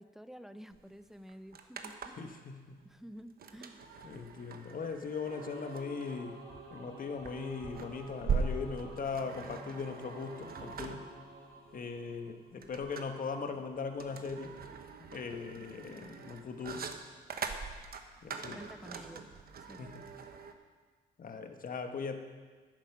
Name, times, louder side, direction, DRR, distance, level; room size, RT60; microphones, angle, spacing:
voice 1, 0.0-2.2 2.8-3.8 18.5-19.2 19.6-19.8, equal, ahead, 11 dB, 0.6 m, -50 dB
sound 1, 0.7-0.8 1.1-2.3 3.4-20.5, right 5 dB, 50° right, 1.0 m, -41 dB
voice 2, 2.2-2.8 4.0-6.4 6.7-11.0 11.7-14.5 15.1-16.8 18.2-18.6 19.8-20.0 21.2-22.2, left 5 dB, 45° left, 6 dB, 1.2 m, -39 dB
Singing / Musical instrument, 5.2-12.7, right 2 dB, 85° right, 3.9 m, -50 dB
10.5 x 9.0 x 6.0 m, 1.5 s
cardioid pair, 90°, 20 cm